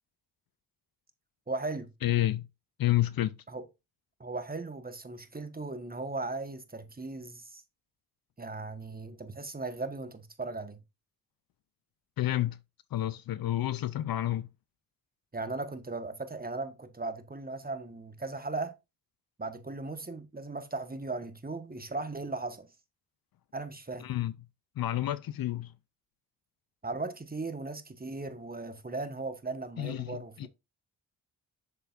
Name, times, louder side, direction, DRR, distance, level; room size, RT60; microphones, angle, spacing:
voice 1, 1.5-1.9 3.5-3.7 4.2-7.6 8.4-10.8 15.3-18.7 19.4-22.7 23.5-24.1 26.8-30.5, right 3 dB, 20° right, 1.4 m, -37 dB
voice 2, 2.0-2.5 2.8-3.4 12.2-12.6 12.9-14.5 24.0-24.3 24.8-25.7 29.8-30.5, left 14 dB, 55° left, 0.6 m, -29 dB
6.8 x 6.8 x 2.5 m
hypercardioid pair, 45°, 43 cm